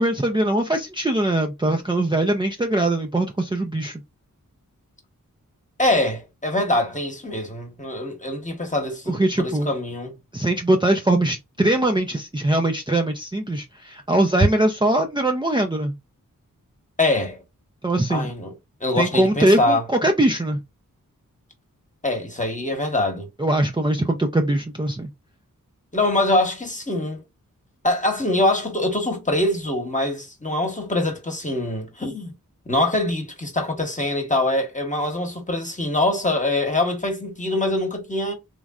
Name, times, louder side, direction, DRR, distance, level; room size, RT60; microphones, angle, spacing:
voice 1, 0.0-4.0 9.1-9.7 10.3-16.0 17.8-18.3 19.0-20.6 23.4-25.1, right 1 dB, 15° right, 0.5 m, -21 dB
voice 2, 5.8-10.2 17.0-17.4 18.1-18.5 18.8-19.8 22.0-23.3 25.9-27.2 27.8-32.3 32.7-38.3, left 1 dB, 25° left, 1.1 m, -24 dB
3.2 x 2.5 x 2.3 m
cardioid pair, 40°, 33 cm